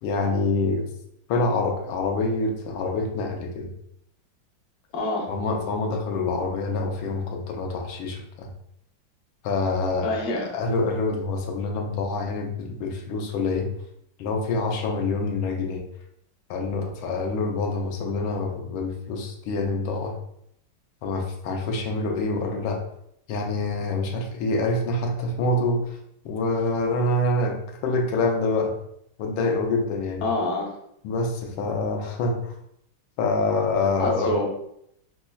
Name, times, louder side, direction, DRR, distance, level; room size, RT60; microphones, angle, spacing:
voice 1, 0.0-0.9 1.3-3.7 5.3-8.5 9.4-13.7 14.2-15.8 16.5-20.1 21.0-22.8 23.3-26.0 26.2-28.7 29.2-30.2 31.0-32.5 33.2-34.4, left 3 dB, 80° left, 2 dB, 1.4 m, -26 dB
voice 2, 4.9-5.3 10.0-10.5 30.2-30.7 34.0-34.4, left 2 dB, 60° left, -2 dB, 0.7 m, -26 dB
5.2 x 2.0 x 2.2 m, 0.74 s
omnidirectional pair, 2.3 m